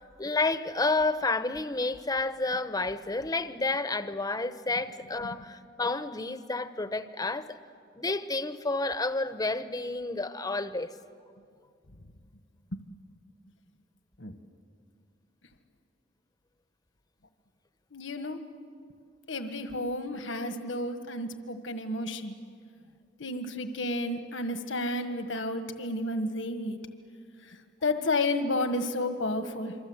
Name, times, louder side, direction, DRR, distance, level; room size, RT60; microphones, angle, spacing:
voice 1, 0.2-7.6 7.9-10.9, left 3 dB, 20° left, 0.9 m, -30 dB
voice 2, 17.9-18.4 19.3-22.4 23.2-26.8 27.4-29.8, left 2 dB, 80° left, 1.5 m, -31 dB
27.0 x 24.5 x 8.0 m
head